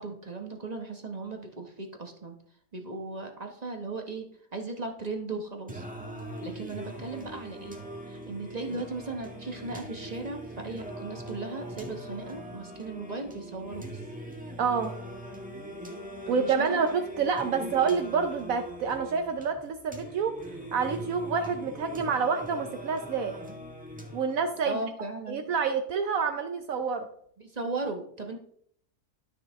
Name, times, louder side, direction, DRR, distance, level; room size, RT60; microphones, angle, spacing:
voice 1, 0.0-2.4 2.7-4.2 4.5-5.8 6.4-7.8 8.1-14.0 16.3-16.8 17.6-17.7 24.6-25.4 27.4-28.4, right 3 dB, 30° right, 3 dB, 1.1 m, -37 dB
Singing, 5.7-24.7, right 1 dB, 5° right, 1.2 m, -41 dB
voice 2, 14.6-14.9 16.3-20.4 20.7-23.4 24.1-24.8 25.3-27.1, right 5 dB, 70° right, 6 dB, 1.1 m, -28 dB
12.0 x 5.8 x 3.5 m, 0.64 s
omnidirectional pair, 1.6 m